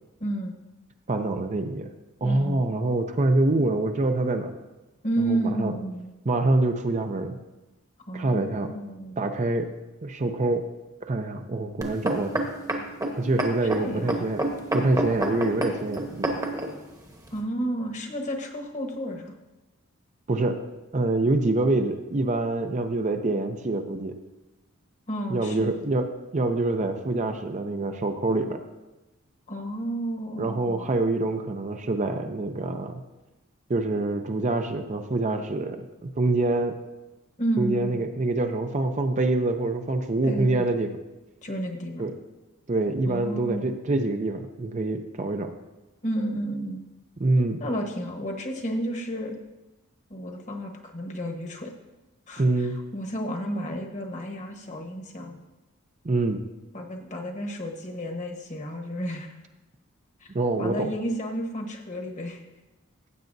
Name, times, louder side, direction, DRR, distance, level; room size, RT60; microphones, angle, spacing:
voice 1, 0.2-0.6 2.2-2.6 5.0-6.1 8.0-9.2 13.7-14.3 17.3-19.3 25.1-25.8 29.5-30.9 37.4-38.0 40.2-40.6 41.4-42.0 43.1-43.7 46.0-46.8 47.6-49.3 50.1-51.7 52.3-55.4 56.7-59.3 60.2-60.3 60.6-62.4, right 1 dB, 35° left, 2 dB, 1.1 m, -31 dB
voice 2, 1.1-1.9 2.2-4.6 5.3-5.7 6.3-7.4 8.1-8.7 9.2-9.7 10.0-10.7 11.0-12.5 13.2-14.4 14.7-16.3 20.3-20.6 20.9-24.1 25.3-28.6 30.4-33.0 33.7-36.8 37.6-40.9 42.0-42.1 42.7-45.5 47.2-47.6 52.4-52.8 56.0-56.4 60.3-60.9, right 2 dB, 35° right, 6 dB, 0.5 m, -25 dB
sound 1, 11.8-16.7 17.4-17.5, right 1 dB, 15° right, 1.0 m, -28 dB
15.0 x 7.9 x 2.6 m, 1.0 s
head